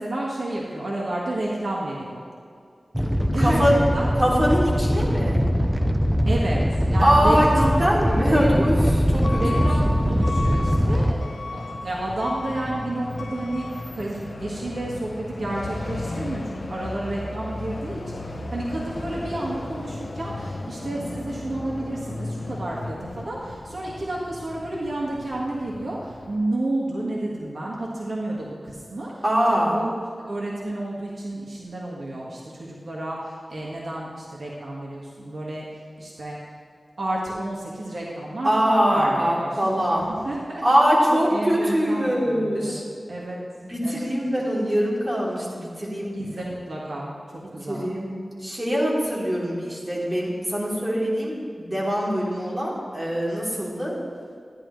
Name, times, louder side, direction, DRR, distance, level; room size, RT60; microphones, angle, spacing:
voice 1, 0.0-2.2 3.3-4.1 6.2-6.6 6.9-7.7 8.3-8.6 9.3-29.9 30.3-36.4 37.0-40.6 41.1-42.8 43.1-43.4 43.8-44.1 46.1-47.9, right 1 dB, 75° right, -4 dB, 1.5 m, -31 dB
Animal, 2.9-11.1, equal, 5° right, 0.7 m, -22 dB
voice 2, 3.4-3.7 4.2-5.4 7.0-7.5 7.8-9.7 29.2-29.8 38.4-40.1 40.6-42.8 43.7-46.1 47.7-48.1 48.4-53.9, equal, 30° right, -6 dB, 3.1 m, -23 dB
Truck / Alarm, 9.1-26.4, left 2 dB, 70° left, 0.8 m, -35 dB
13.5 x 10.5 x 3.1 m, 2.3 s
wide cardioid pair, 80°, 0 cm